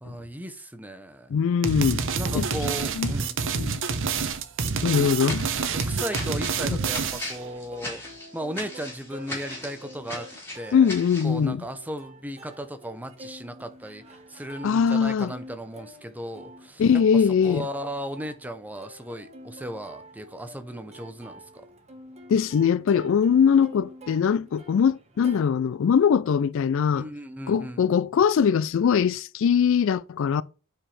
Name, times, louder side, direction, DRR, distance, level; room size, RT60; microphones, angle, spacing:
voice 1, 0.0-1.3 2.1-3.4 5.7-8.0 8.3-10.3 10.5-10.9 11.2-14.0 14.3-16.8 17.1-21.7 26.9-27.9, equal, 10° right, 0.7 m, -36 dB
voice 2, 1.3-2.0 2.3-2.5 3.0-3.1 3.5-3.8 4.8-5.5 6.7-6.8 10.7-11.6 14.6-15.3 16.8-17.6 22.3-27.1 27.5-30.4, left 7 dB, 65° left, 0.3 m, -21 dB
sound 1, 1.6-7.4, right 5 dB, 60° right, 0.8 m, -27 dB
sound 2, 5.2-11.4, left 1 dB, 10° left, 3.4 m, -38 dB
Plucked string instrument, 6.5-25.4, right 1 dB, 30° right, 1.4 m, -48 dB
8.7 x 5.0 x 3.3 m
head